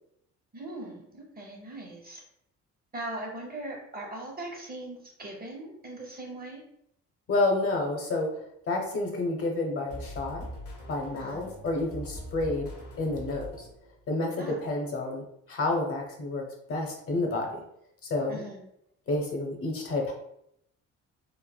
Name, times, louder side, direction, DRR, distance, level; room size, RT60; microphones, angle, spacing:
voice 1, 0.5-2.2 2.9-6.6 11.1-11.5 14.4-14.6 18.3-18.6, right 1 dB, 30° right, -1 dB, 0.9 m, -40 dB
voice 2, 7.3-8.4 8.7-10.5 10.9-12.7 13.0-13.7 14.1-17.6 18.1-18.4 19.1-20.1, left 2 dB, 50° left, 1 dB, 0.7 m, -29 dB
sound 1, 9.9-14.0, equal, 85° left, 0.9 m, -42 dB
3.2 x 2.0 x 2.2 m, 0.75 s
cardioid pair, 90°, 30 cm